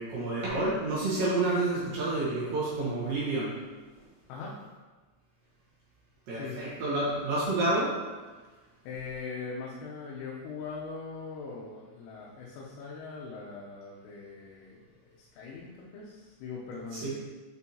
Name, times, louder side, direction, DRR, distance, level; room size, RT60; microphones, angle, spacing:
voice 1, 0.0-3.5 6.3-7.9 16.9-17.1, right 2 dB, 70° right, -8 dB, 2.1 m, -29 dB
voice 2, 6.3-6.6 8.8-14.8 15.2-17.1, left 4 dB, 85° left, -4 dB, 3.4 m, -41 dB
7.8 x 4.5 x 2.8 m, 1.3 s
omnidirectional pair, 5.9 m